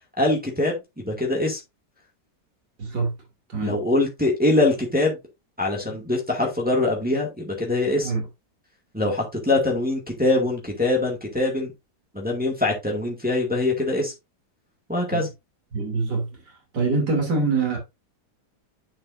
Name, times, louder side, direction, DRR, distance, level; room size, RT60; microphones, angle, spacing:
voice 1, 0.2-1.6 3.6-5.2 5.6-8.1 8.9-11.7 12.1-14.1 14.9-15.3, left 2 dB, 5° right, 2.0 m, -23 dB
voice 2, 2.8-3.1 3.5-3.8 8.0-8.2 15.1-15.2 15.7-16.3 16.7-17.8, right 3 dB, 85° right, 3.5 m, -24 dB
10.0 x 5.3 x 2.6 m
omnidirectional pair, 1.8 m